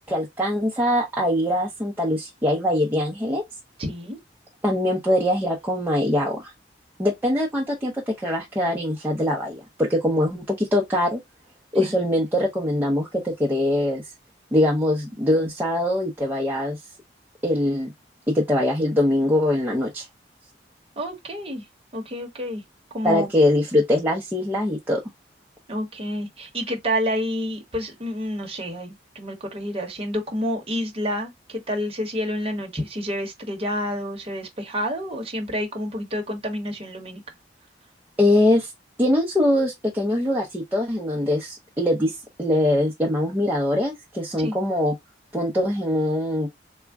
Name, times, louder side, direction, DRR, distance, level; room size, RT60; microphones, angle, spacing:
voice 1, 0.1-3.4 4.6-6.5 7.0-11.2 11.7-14.0 14.5-16.8 17.4-17.9 18.3-20.1 23.0-25.0 38.2-38.7 39.0-44.9 45.3-46.5, left 1 dB, 10° right, 0.6 m, -22 dB
voice 2, 3.8-4.2 11.8-12.0 21.0-21.6 21.9-22.6 22.9-23.3 25.7-37.2 44.4-44.6, equal, 35° right, 1.0 m, -29 dB
3.6 x 2.1 x 3.4 m
head